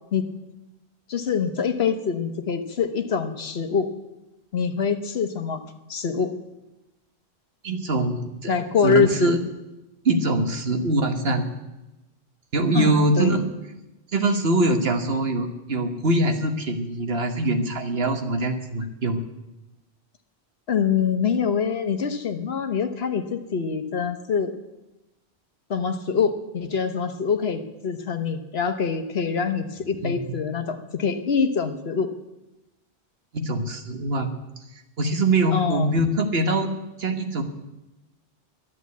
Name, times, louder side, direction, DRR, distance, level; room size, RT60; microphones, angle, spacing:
voice 1, 1.1-3.9 4.5-5.6 5.9-6.3 8.5-9.3 12.7-13.3 20.7-24.5 25.7-32.1 35.5-35.9, left 6 dB, 70° left, 8 dB, 1.3 m, -24 dB
voice 2, 7.6-8.5 8.8-9.4 10.0-11.4 12.5-13.5 14.1-19.2 30.0-30.4 33.3-34.3 35.0-36.7 37.0-37.4, right 2 dB, 65° right, 6 dB, 1.6 m, -23 dB
11.5 x 11.0 x 8.4 m, 0.99 s
omnidirectional pair, 1.1 m